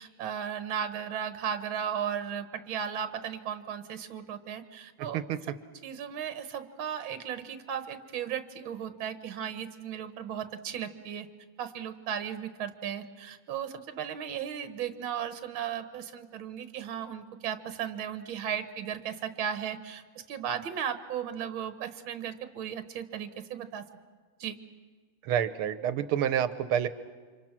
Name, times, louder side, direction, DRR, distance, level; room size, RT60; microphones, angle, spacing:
voice 1, 0.0-5.4 5.8-11.3 11.6-20.0 20.3-23.8 24.4-24.6, right 8 dB, 70° right, 9 dB, 2.0 m, -36 dB
voice 2, 25.2-26.9, right 9 dB, 90° right, 12 dB, 1.9 m, -28 dB
30.0 x 26.0 x 6.1 m, 1.5 s
omnidirectional pair, 2.3 m